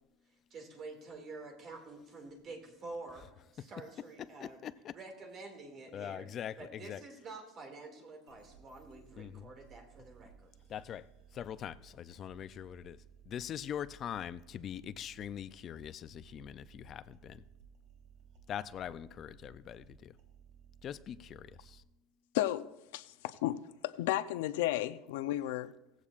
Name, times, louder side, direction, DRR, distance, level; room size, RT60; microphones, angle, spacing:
voice 1, 0.5-4.6 4.9-6.3 6.6-10.5, right 3 dB, 30° right, 2.3 m, -48 dB
voice 2, 4.4-4.9 5.9-7.0 9.2-9.5 10.7-11.1 11.3-13.0 13.3-17.4 18.5-20.1 20.8-21.8, left 9 dB, 30° left, 0.4 m, -42 dB
sound 1, 8.3-21.8, right 7 dB, 60° right, 3.6 m, -59 dB
voice 3, 22.3-25.7, left 14 dB, 90° left, 0.6 m, -34 dB
17.5 x 15.5 x 2.5 m
cardioid pair, 170°, 0 cm